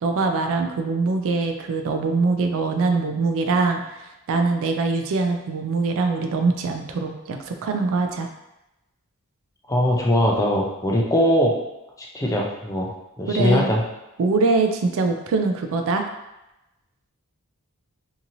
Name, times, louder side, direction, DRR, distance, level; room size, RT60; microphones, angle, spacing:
voice 1, 0.0-3.8 4.3-8.3 13.3-13.7 14.2-16.0, right 3 dB, 65° right, 5 dB, 0.3 m, -23 dB
voice 2, 9.7-11.5 12.0-12.9 13.2-13.8, equal, 15° left, -2 dB, 0.4 m, -21 dB
2.8 x 2.6 x 2.6 m, 0.95 s
head